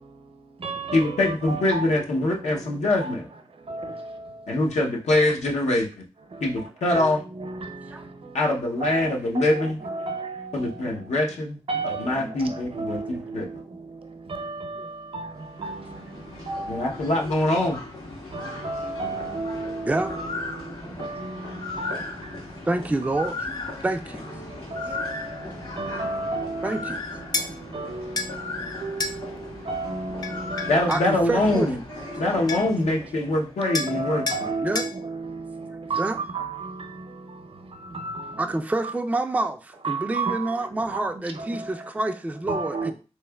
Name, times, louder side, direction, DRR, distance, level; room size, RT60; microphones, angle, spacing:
voice 1, 0.0-4.7 6.2-11.4 11.7-17.6 18.1-22.7 23.0-23.2 24.3-31.0 32.0-32.5 32.8-33.1 33.6-38.9 39.8-41.9 42.4-42.9, right 3 dB, 55° right, 0.6 m, -34 dB
voice 2, 0.9-3.2 4.5-6.0 6.4-7.2 8.3-9.8 10.5-11.6 12.0-13.5 16.7-17.8 30.7-31.8 32.2-34.2, left 1 dB, 80° left, 0.7 m, -23 dB
sound 1, 15.2-33.6, left 3 dB, 60° left, 1.7 m, -37 dB
voice 3, 22.7-23.5 23.8-24.3 26.6-27.0 30.9-31.7 34.6-34.8 35.7-36.2 38.4-42.9, right 2 dB, 10° right, 0.3 m, -27 dB
sound 2, 27.3-27.5 28.2-28.3 29.0-29.2 30.2-31.1 32.1-32.2 32.5-32.8 33.7-34.0 34.3-34.4 34.8-34.9, left 3 dB, 35° left, 0.6 m, -29 dB
3.5 x 3.1 x 2.2 m
cardioid pair, 50°, 11 cm